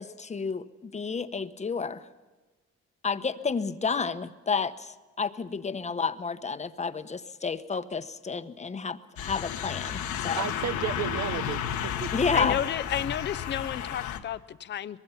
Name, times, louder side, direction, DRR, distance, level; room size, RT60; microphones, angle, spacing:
voice 1, 0.0-2.1 3.0-10.4 12.1-12.6, left 5 dB, 25° left, 11 dB, 0.9 m, -31 dB
sound 1, 9.2-14.2, left 9 dB, 85° left, 1.5 m, -32 dB
voice 2, 9.9-12.1, right 10 dB, 75° right, 8 dB, 0.8 m, -34 dB
voice 3, 12.3-15.0, left 10 dB, 40° left, 15 dB, 0.6 m, -31 dB
24.0 x 21.0 x 5.8 m, 1.2 s
cardioid pair, 120°, 29 cm